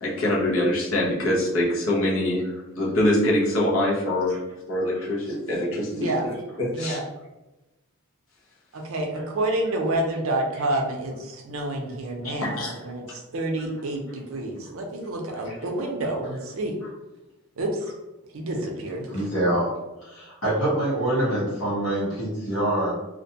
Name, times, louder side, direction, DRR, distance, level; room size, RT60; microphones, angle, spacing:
voice 1, 0.0-2.4 2.8-4.3 4.7-7.0 12.4-12.8, left 1 dB, 65° left, -4 dB, 0.8 m, -24 dB
voice 2, 5.9-6.3 6.7-7.0 8.7-16.7 17.6-17.8 18.3-19.1, right 1 dB, 70° right, 2 dB, 0.5 m, -28 dB
voice 3, 19.1-19.7 20.0-22.9, right 1 dB, 85° left, -9 dB, 1.0 m, -25 dB
2.5 x 2.2 x 2.7 m, 1.0 s
head